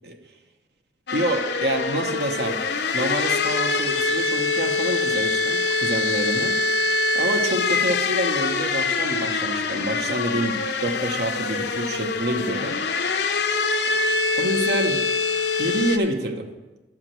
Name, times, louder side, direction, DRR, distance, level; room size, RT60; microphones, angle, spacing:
sound 1, 1.1-16.0, left 3 dB, 65° left, 0.7 m, -24 dB
voice 1, 1.1-2.6 2.9-6.6 7.1-12.8 14.4-15.0 15.6-16.5, right 1 dB, 60° right, 5 dB, 0.9 m, -27 dB
11.0 x 4.8 x 7.5 m, 1.1 s
head